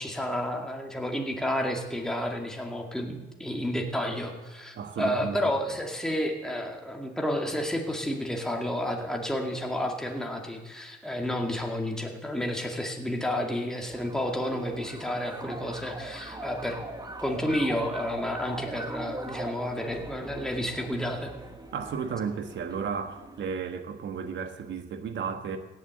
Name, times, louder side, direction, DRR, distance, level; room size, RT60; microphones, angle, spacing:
voice 1, 0.0-16.8 17.2-21.4, left 1 dB, 5° left, 2.1 m, -31 dB
voice 2, 4.7-5.4 21.7-25.6, right 6 dB, 65° right, 1.4 m, -33 dB
sound 1, 13.9-23.5, right 2 dB, 20° right, 1.6 m, -41 dB
17.0 x 7.8 x 7.7 m
cardioid pair, 90°, 20 cm